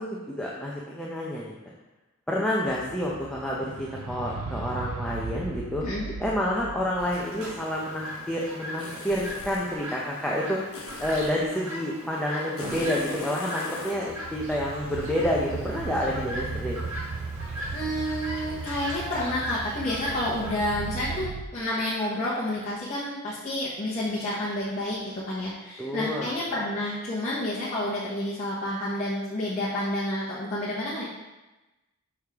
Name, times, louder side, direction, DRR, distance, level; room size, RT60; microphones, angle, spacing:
voice 1, 0.0-1.5 2.3-5.8 6.2-16.8 25.8-26.3, left 1 dB, 5° left, -5 dB, 0.6 m, -29 dB
sound 1, 2.7-8.7 8.9-9.1 9.4-9.7 13.8-21.4, right 4 dB, 85° right, 0.5 m, -37 dB
voice 2, 5.8-6.1 17.7-31.0, left 1 dB, 35° left, -8 dB, 1.0 m, -30 dB
Chirp tweet, 7.0-20.6, equal, 65° right, 1.9 m, -38 dB
sound 2, 8.8-9.7 10.7-11.4 12.6-14.0, left 3 dB, 70° left, 1.1 m, -38 dB
6.3 x 4.9 x 3.5 m, 1.1 s
head